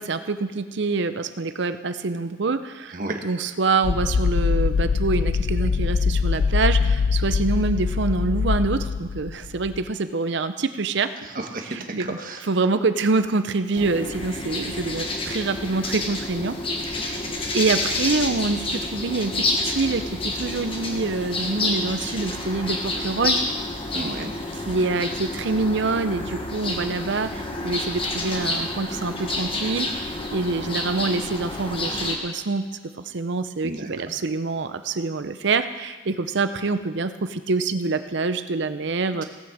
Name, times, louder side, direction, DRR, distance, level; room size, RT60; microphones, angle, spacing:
voice 1, 0.0-3.0 3.2-11.1 11.7-12.2 12.5-16.6 16.8-17.2 17.5-23.4 24.7-32.7 33.0-39.2, right 3 dB, 60° right, 11 dB, 0.6 m, -26 dB
voice 2, 2.9-3.2 11.2-12.4 23.9-24.3 33.6-34.1, right 2 dB, 45° right, 4 dB, 1.3 m, -32 dB
sound 1, 3.8-9.9, left 5 dB, 70° left, 0.4 m, -23 dB
sound 2, 13.7-32.2, left 2 dB, 25° left, 1.3 m, -29 dB
17.5 x 6.2 x 7.3 m, 1.4 s
head